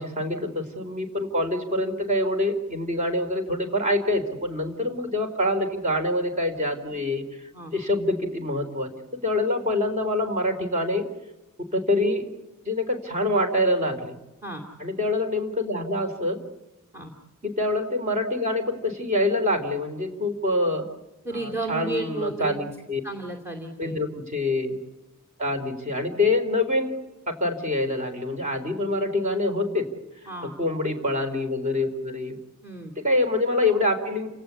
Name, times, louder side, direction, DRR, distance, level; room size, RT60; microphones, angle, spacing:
voice 1, 0.0-7.2 7.7-8.9 9.2-11.1 11.7-12.3 12.6-14.1 14.8-16.4 17.4-20.8 21.3-23.0 23.8-24.8 25.4-27.0 27.3-29.9 30.6-32.4 33.0-34.3, left 1 dB, 35° right, 6 dB, 4.3 m, -25 dB
voice 2, 21.2-22.6 23.0-24.1 30.3-30.5 32.6-32.9, right 2 dB, 10° right, 3 dB, 2.6 m, -33 dB
29.5 x 18.5 x 8.6 m, 0.99 s
head